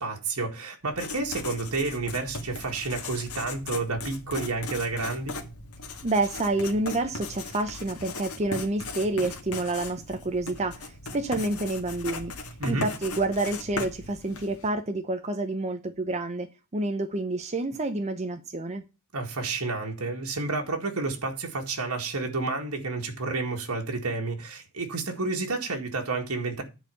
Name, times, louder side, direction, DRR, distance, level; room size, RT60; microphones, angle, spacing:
voice 1, 0.0-5.4 12.6-12.9 19.1-26.6, right 3 dB, 80° right, 2.0 m, -30 dB
Writing, 0.8-14.7, left 3 dB, 85° left, 1.8 m, -38 dB
voice 2, 6.0-12.3 12.6-16.5 16.7-18.8, right 2 dB, 30° right, 0.8 m, -28 dB
10.5 x 4.5 x 6.9 m
head